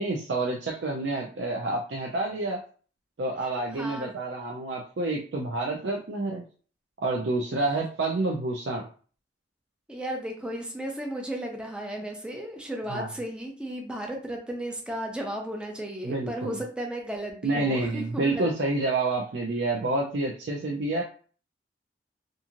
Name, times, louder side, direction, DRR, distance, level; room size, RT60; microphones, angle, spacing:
voice 1, 0.0-2.6 3.2-6.5 7.0-8.9 12.9-13.1 16.0-16.6 17.4-21.0, right 2 dB, 80° right, -1 dB, 0.5 m, -28 dB
voice 2, 3.5-4.1 9.9-18.5, right 1 dB, 5° right, 1 dB, 0.5 m, -34 dB
2.8 x 2.5 x 2.4 m, 0.40 s
head